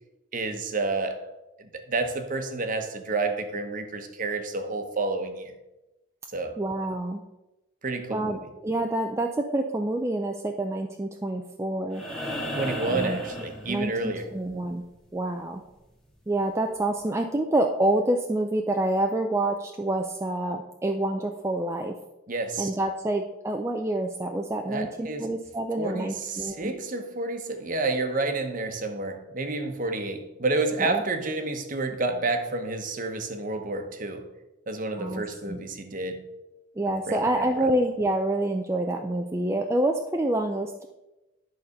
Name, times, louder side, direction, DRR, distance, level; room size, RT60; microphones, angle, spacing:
voice 1, 0.3-1.3 1.6-5.6 6.3-6.6 7.8-8.5 12.5-14.3 22.3-22.7 24.7-25.3 25.8-34.3 34.7-36.3 37.1-37.7, right 3 dB, 40° right, 6 dB, 1.0 m, -30 dB
voice 2, 6.6-7.2 8.1-12.0 12.9-13.2 13.7-14.8 15.1-15.6 16.3-22.0 22.6-26.7 30.8-31.0 35.0-35.6 36.8-40.9, right 1 dB, 15° right, 3 dB, 0.4 m, -27 dB
sound 1, 11.9-14.2 16.1-16.2, equal, ahead, 1.5 m, -34 dB
11.0 x 4.2 x 6.5 m, 0.99 s
head